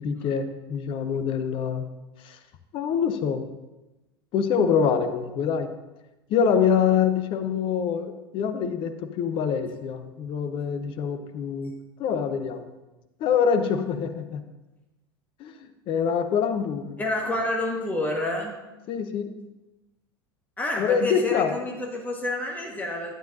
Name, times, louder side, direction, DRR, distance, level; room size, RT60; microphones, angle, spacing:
voice 1, 0.0-1.8 2.2-2.4 2.7-3.5 4.3-5.7 6.3-11.7 12.0-12.7 13.2-14.4 15.4-17.0 18.9-19.3 20.8-21.5, left 7 dB, 40° left, 9 dB, 0.8 m, -25 dB
voice 2, 17.0-18.6 20.6-23.1, left 1 dB, 10° left, 0 dB, 1.4 m, -28 dB
11.5 x 9.1 x 2.6 m, 1.0 s
figure-of-eight pair, 80°, 13 cm